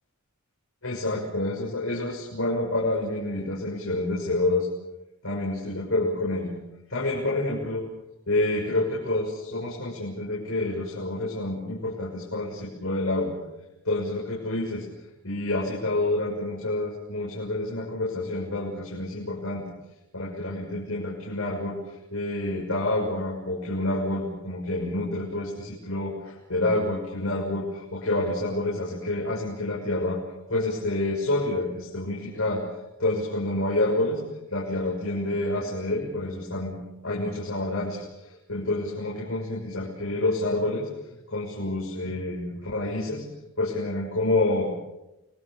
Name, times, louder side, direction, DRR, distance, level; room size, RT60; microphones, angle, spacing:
voice 1, 0.8-4.7 5.2-6.5 6.9-7.8 8.3-13.3 13.8-14.8 15.2-19.6 20.1-30.2 30.5-32.6 33.0-34.2 34.5-40.9 41.3-43.2 43.6-44.7, left 2 dB, 70° left, -3 dB, 6.7 m, -28 dB
29.5 x 23.0 x 6.8 m, 0.95 s
head